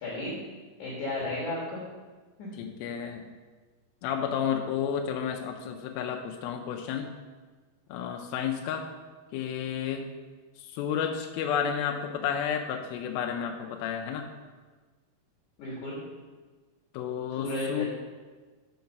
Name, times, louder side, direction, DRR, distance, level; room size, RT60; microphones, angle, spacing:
voice 1, 0.0-0.4 0.8-1.8 2.4-2.5 15.6-16.0 17.4-17.9, left 1 dB, 60° left, -6 dB, 2.6 m, -33 dB
voice 2, 2.5-3.2 4.0-7.1 7.9-8.9 9.3-10.0 10.6-14.3 16.9-17.9, left 8 dB, 80° left, 2 dB, 2.3 m, -31 dB
5.9 x 5.8 x 5.3 m, 1.3 s
omnidirectional pair, 4.6 m